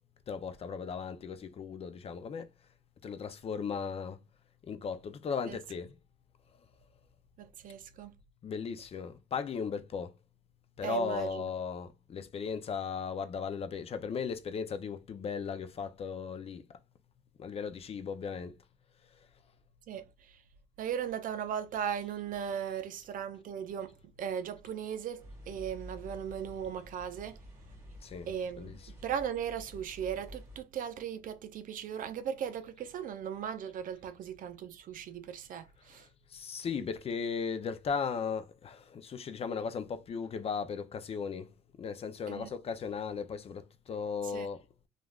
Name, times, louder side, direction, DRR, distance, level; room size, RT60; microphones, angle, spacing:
voice 1, 0.3-2.5 3.0-4.2 4.7-6.0 8.4-10.1 10.8-16.6 17.4-18.6 28.0-28.3 28.6-28.9 36.3-44.9, left 6 dB, 35° left, 0.5 m, -37 dB
voice 2, 7.4-8.1 10.8-11.5 19.9-20.4 20.8-27.4 28.3-36.1 42.3-42.5 44.2-44.5, right 8 dB, 55° right, 0.5 m, -38 dB
sound 1, 25.2-30.6, equal, 20° right, 1.7 m, -50 dB
3.3 x 2.4 x 2.3 m
cardioid pair, 110°, 17 cm